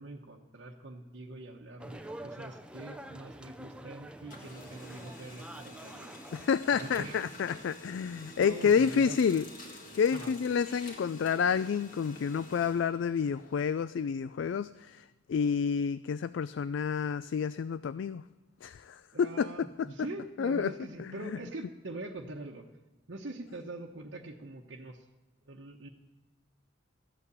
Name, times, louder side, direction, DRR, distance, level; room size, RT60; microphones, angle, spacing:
voice 1, 0.0-6.1 6.7-7.2 8.4-9.2 10.1-10.3 19.1-22.6 23.1-25.0 25.5-25.9, right 2 dB, 65° right, -1 dB, 1.0 m, -43 dB
sound 1, 1.8-7.2, right 1 dB, 5° right, 0.5 m, -47 dB
Printer, 2.6-3.9 4.2-13.7, left 1 dB, 40° left, 2.0 m, -49 dB
voice 2, 6.3-9.5 9.9-18.2 18.6-19.9 20.4-20.7 21.0-21.4, left 6 dB, 65° left, 14 dB, 0.3 m, -29 dB
14.0 x 8.4 x 6.8 m, 1.2 s
head